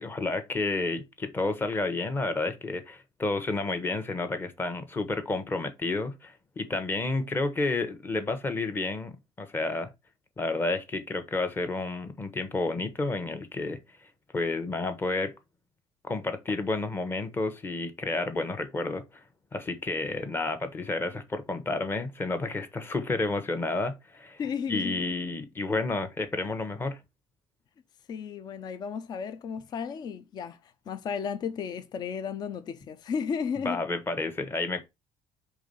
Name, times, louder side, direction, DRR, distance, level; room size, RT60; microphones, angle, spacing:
voice 1, 0.0-9.1 9.4-9.9 10.4-13.8 14.3-15.4 16.0-19.2 19.5-24.4 24.7-27.0 33.6-34.8, left 3 dB, 20° left, 1.1 m, -30 dB
voice 2, 24.4-25.0 28.1-33.8, left 6 dB, 40° left, 0.6 m, -34 dB
4.7 x 3.7 x 5.4 m
cardioid pair, 130°, 11 cm